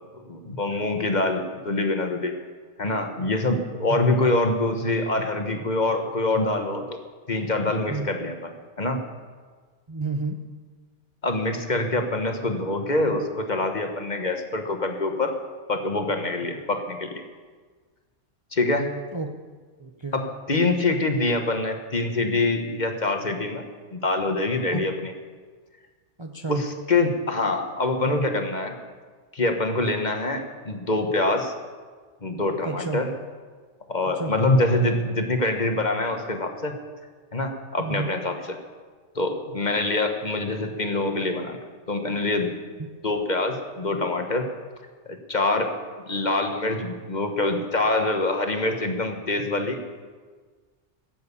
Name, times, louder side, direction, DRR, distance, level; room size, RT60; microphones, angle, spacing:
voice 1, 0.3-2.3 2.8-7.0 7.3-9.0 11.2-15.4 15.7-17.1 18.5-19.0 20.1-23.6 23.9-25.1 26.5-28.7 29.3-31.5 32.2-33.1 33.9-36.8 37.3-38.6 39.1-41.6 41.9-42.6 43.0-44.5 45.1-45.7 46.1-49.8, left 2 dB, 40° left, 5 dB, 1.3 m, -25 dB
voice 2, 9.9-10.4 19.1-19.3 19.8-20.2 24.7-24.8 26.2-26.6 32.6-33.0 34.2-34.3 37.8-38.1, right 3 dB, 25° right, 3 dB, 0.7 m, -30 dB
16.5 x 7.8 x 8.4 m, 1.5 s
omnidirectional pair, 1.3 m